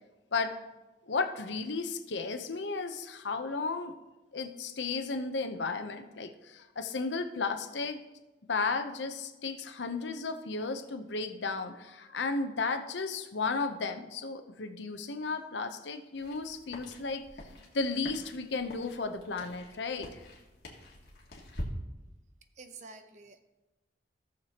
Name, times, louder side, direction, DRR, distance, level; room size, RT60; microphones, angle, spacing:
voice 1, 1.1-3.9 4.3-8.0 8.5-17.3 17.7-20.2, left 4 dB, 80° left, 8 dB, 0.8 m, -34 dB
sound 1, 16.2-21.7, left 1 dB, 60° left, 1.8 m, -46 dB
voice 2, 22.6-23.4, right 4 dB, 40° right, 8 dB, 0.7 m, -49 dB
17.0 x 6.7 x 2.9 m, 1.1 s
head